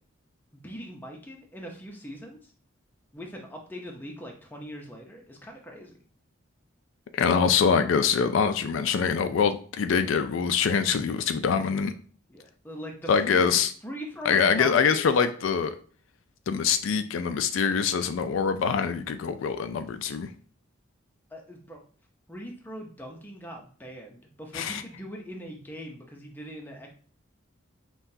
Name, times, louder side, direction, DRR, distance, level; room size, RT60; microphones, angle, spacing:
voice 1, 0.6-2.5 3.1-6.0 12.3-15.0 21.3-21.8 22.3-26.9, equal, 10° left, 1 dB, 0.6 m, -41 dB
voice 2, 7.1-11.9 13.1-13.7 14.3-15.7 16.5-20.3 24.5-24.8, left 6 dB, 75° left, 9 dB, 0.3 m, -24 dB
5.6 x 2.3 x 2.7 m, 0.43 s
head